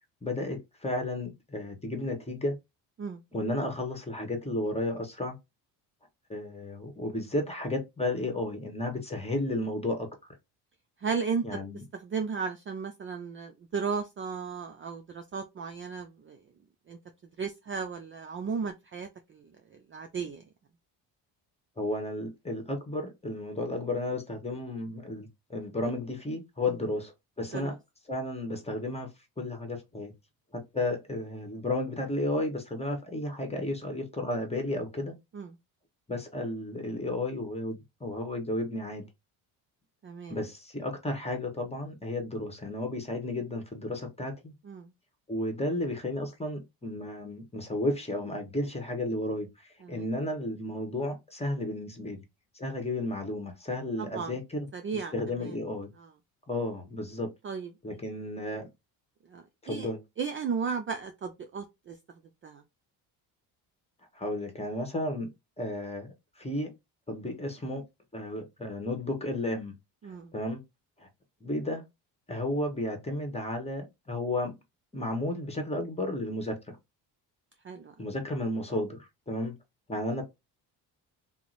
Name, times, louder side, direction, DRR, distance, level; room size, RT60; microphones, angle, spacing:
voice 1, 0.2-2.6 3.3-5.4 6.3-10.1 11.4-11.8 21.8-27.8 28.1-29.1 29.4-30.1 30.5-35.1 36.1-39.1 40.3-44.5 45.3-52.2 52.5-54.7 54.9-55.9 56.5-57.3 57.8-58.7 59.6-60.0 64.1-65.3 65.6-66.7 67.1-67.8 68.1-69.7 70.3-70.6 71.0-71.1 71.4-71.8 72.3-74.5 74.9-76.6 78.0-79.6 79.9-80.2, left 1 dB, 15° left, 1.2 m, -33 dB
voice 2, 11.0-11.6 11.9-16.4 16.9-17.0 17.4-20.4 27.5-27.7 35.3-35.5 40.0-40.4 44.6-44.9 49.8-50.1 54.0-54.3 54.7-55.1 55.4-55.5 56.0-56.1 57.4-57.7 59.3-59.9 60.2-62.0 62.4-62.6 70.0-70.3 77.6-77.9, right 5 dB, 30° right, 0.4 m, -35 dB
2.8 x 2.1 x 3.9 m
supercardioid pair, 70°, 45 cm